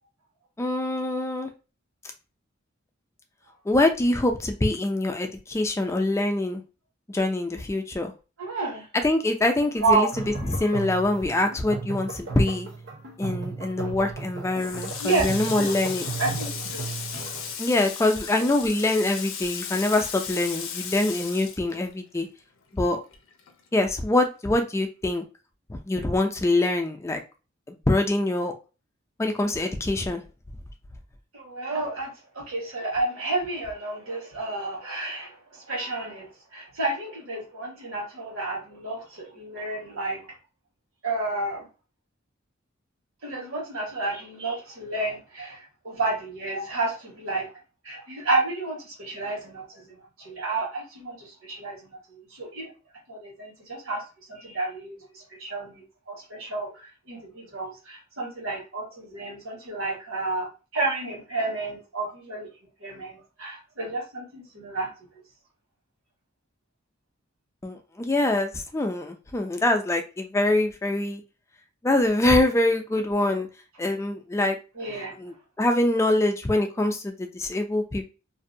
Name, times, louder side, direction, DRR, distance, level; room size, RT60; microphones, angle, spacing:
voice 1, 0.6-1.5 3.7-6.6 7.1-8.1 9.0-10.1 10.4-12.7 13.2-16.1 17.6-22.3 22.7-23.0 23.7-25.2 25.7-27.2 27.7-28.5 29.2-30.2 67.6-71.2 71.8-73.5 73.8-74.6 75.2-78.0, left 2 dB, 15° left, 4 dB, 0.3 m, -24 dB
voice 2, 8.4-8.9 9.8-10.8 15.0-15.7 16.2-17.0 31.3-40.2 41.0-41.7 43.2-47.5 47.8-52.0 52.3-52.7 53.1-54.0 54.3-56.7 57.1-62.5 62.8-64.9 74.7-75.2, right 3 dB, 85° right, -2 dB, 1.3 m, -31 dB
sound 1, 10.0-17.5, right 4 dB, 60° right, 0.7 m, -36 dB
Water tap faucet, 14.5-22.4 22.7-24.0, left 7 dB, 70° left, 0.5 m, -36 dB
2.6 x 2.1 x 2.6 m, 0.31 s
head